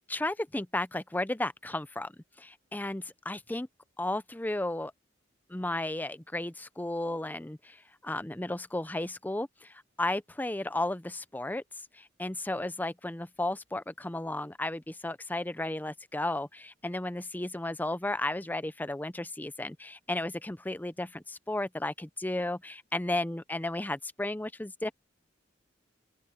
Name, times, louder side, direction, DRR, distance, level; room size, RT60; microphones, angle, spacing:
voice 1, 0.1-2.1 2.4-3.7 4.0-4.9 5.5-11.6 11.9-24.9, left 1 dB, 10° left, 0.5 m, -34 dB
open air
head